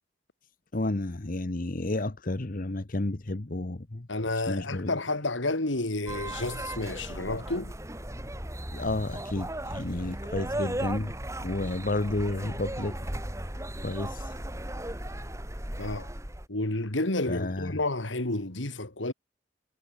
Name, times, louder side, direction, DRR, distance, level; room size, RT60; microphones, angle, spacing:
voice 1, 0.7-4.1 4.5-4.9 8.7-11.1 11.4-13.0 13.8-14.4 17.3-17.8, left 2 dB, 45° left, 1.1 m, -31 dB
voice 2, 4.1-7.7 15.8-16.1 16.5-19.1, left 2 dB, 80° left, 2.9 m, -30 dB
sound 1, 6.1-16.5, right 1 dB, 15° right, 3.7 m, -36 dB
head